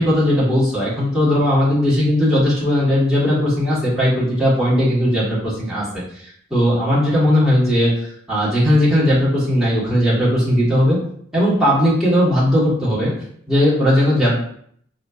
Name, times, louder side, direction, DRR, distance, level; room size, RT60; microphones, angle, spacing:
voice 1, 0.0-5.8 6.5-7.9 8.3-11.0 11.3-13.1 13.5-14.3, equal, 5° right, -10 dB, 1.2 m, -17 dB
4.1 x 2.2 x 2.3 m, 0.64 s
head